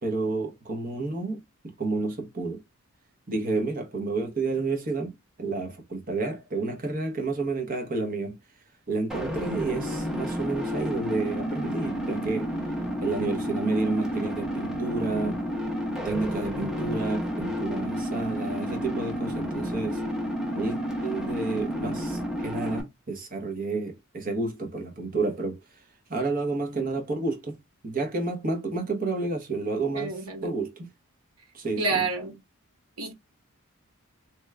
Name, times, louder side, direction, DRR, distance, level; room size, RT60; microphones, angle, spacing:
voice 1, 0.0-1.4 1.8-2.6 3.3-8.4 8.9-12.5 13.0-15.4 16.0-20.0 20.4-25.6 26.1-27.6 27.8-30.1 30.4-30.9 31.5-32.1, right 3 dB, 40° right, 0.8 m, -30 dB
sound 1, 9.1-22.8, equal, ahead, 0.7 m, -31 dB
voice 2, 29.9-30.5 31.8-32.4 33.0-33.1, right 4 dB, 75° right, 1.0 m, -29 dB
3.0 x 2.2 x 3.2 m
head